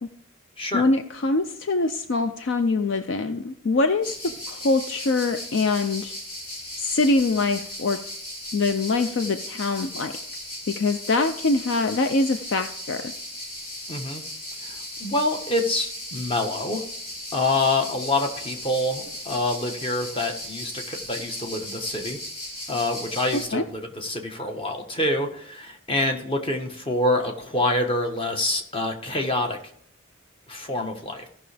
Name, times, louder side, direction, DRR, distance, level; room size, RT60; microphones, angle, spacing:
voice 1, 0.7-4.1 4.5-6.1 6.8-8.0 8.5-10.1 10.7-13.1 23.3-23.6, left 3 dB, 55° left, 9 dB, 0.5 m, -24 dB
sound 1, 4.0-23.5, left 1 dB, 85° left, 3.5 m, -37 dB
voice 2, 13.9-14.2 14.6-16.8 17.3-22.2 22.7-29.6 30.5-31.3, left 2 dB, 25° left, 4 dB, 1.1 m, -26 dB
15.0 x 5.8 x 3.4 m, 0.65 s
head